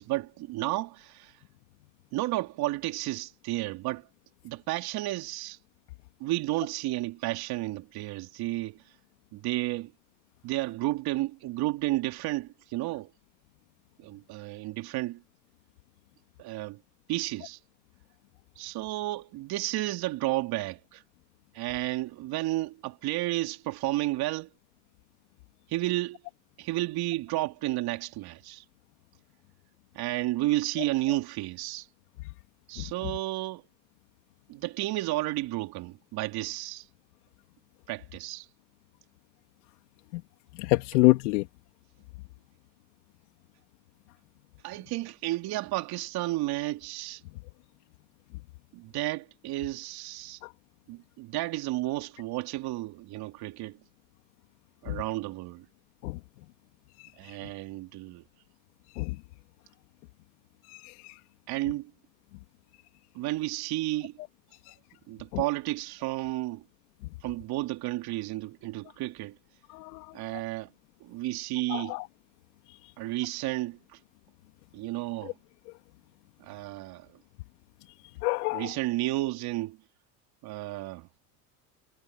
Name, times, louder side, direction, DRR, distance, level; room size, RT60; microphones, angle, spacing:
voice 1, 0.0-1.4 2.1-4.1 4.4-5.6 6.2-8.8 9.3-9.9 10.4-13.1 14.0-15.2 16.4-16.8 17.1-17.6 18.6-21.0 21.5-24.5 25.7-26.2 26.6-28.6 29.9-31.9 32.7-33.6 34.5-36.9 37.9-38.5 44.6-47.2 48.7-50.4 50.9-53.8 54.8-55.6 57.2-58.2 61.5-61.9 63.1-64.1 65.1-66.6 67.2-69.4 70.1-70.7 71.0-72.0 73.0-74.0 74.7-75.3 76.4-77.1 78.5-79.8 80.4-81.1, right 18 dB, 50° right, 3.4 m, -32 dB
voice 2, 40.6-41.4 56.0-56.2 59.0-59.1 69.7-70.0 71.7-72.0 78.2-78.7, left 21 dB, 75° left, 2.6 m, -25 dB
supercardioid pair, 105°, 46 cm